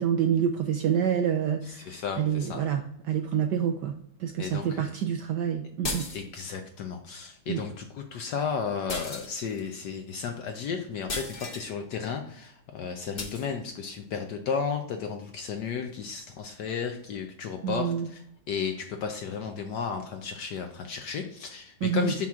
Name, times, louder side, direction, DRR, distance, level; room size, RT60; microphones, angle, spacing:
voice 1, 0.0-2.8 3.1-3.9 4.2-6.1 7.5-7.6 17.6-18.1 21.8-22.1, right 8 dB, 75° right, 5 dB, 1.0 m, -27 dB
voice 2, 1.6-2.6 4.4-4.8 6.1-22.3, left 6 dB, 70° left, 4 dB, 1.0 m, -33 dB
sound 1, 5.8-6.6 8.9-9.7 11.1-11.7 13.2-13.5, left 2 dB, 35° left, 0.9 m, -35 dB
6.0 x 5.8 x 3.6 m, 0.70 s
omnidirectional pair, 2.3 m